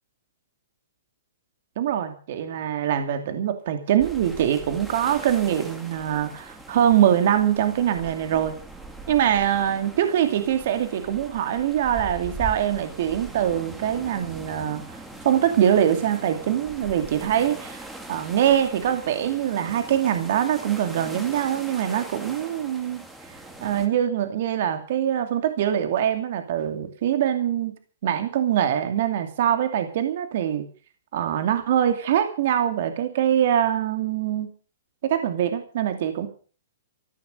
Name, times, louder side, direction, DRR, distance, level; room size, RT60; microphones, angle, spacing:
voice 1, 1.8-8.6 9.1-23.0 23.6-27.8 28.0-30.6 31.1-34.5 35.0-36.3, right 10 dB, 55° right, 8 dB, 2.5 m, -23 dB
sound 1, 4.0-23.9, right 2 dB, 5° right, 2.4 m, -41 dB
14.5 x 13.0 x 6.5 m, 0.40 s
hypercardioid pair, 150°, 0 cm